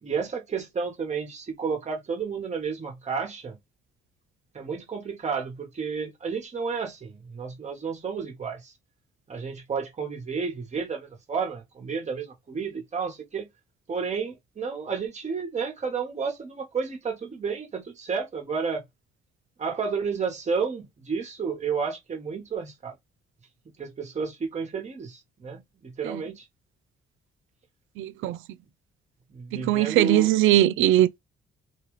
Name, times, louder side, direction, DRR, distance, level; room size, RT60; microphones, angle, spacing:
voice 1, 0.0-3.6 4.5-8.7 9.3-13.5 13.9-18.8 19.6-22.9 23.8-26.5 29.3-30.4, right 5 dB, 35° right, 1.2 m, -31 dB
voice 2, 28.0-28.4 29.5-31.2, right 13 dB, 85° right, 0.4 m, -21 dB
2.8 x 2.4 x 3.0 m
cardioid pair, 90°, 20 cm